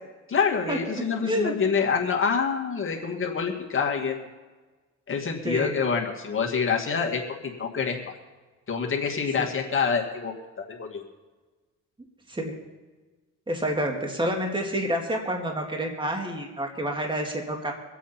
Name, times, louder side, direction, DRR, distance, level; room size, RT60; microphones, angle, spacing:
voice 1, 0.3-4.2 5.1-8.1 8.7-10.3 10.7-11.0, left 6 dB, 45° left, 0 dB, 2.5 m, -26 dB
voice 2, 1.2-1.6 5.4-5.8 9.4-9.5 12.3-12.5 13.5-17.7, equal, 15° right, 2 dB, 2.3 m, -28 dB
24.5 x 8.3 x 4.4 m, 1.3 s
cardioid pair, 90°, 30 cm